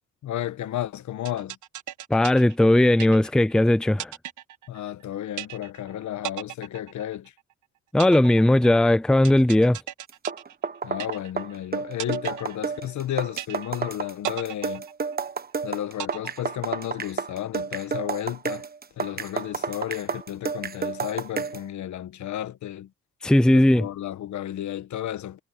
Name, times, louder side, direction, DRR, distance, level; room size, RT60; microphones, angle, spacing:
voice 1, 0.2-1.6 4.7-7.3 10.8-14.8 15.6-18.6 19.0-22.9 23.5-25.4, left 12 dB, 70° left, 1.5 m, -32 dB
sound 1, 1.3-3.6 4.0-5.0 5.4-5.9 6.2-7.5 8.0-11.6 12.0-13.0 13.4-13.9 14.2-15.5 16.0-17.0, right 12 dB, 75° right, 1.5 m, -37 dB
voice 2, 2.1-4.1 7.9-9.8 23.2-23.9, left 1 dB, ahead, 0.5 m, -18 dB
sound 2, 10.1-21.7, right 5 dB, 30° right, 1.2 m, -31 dB
cardioid pair, 90°, 30 cm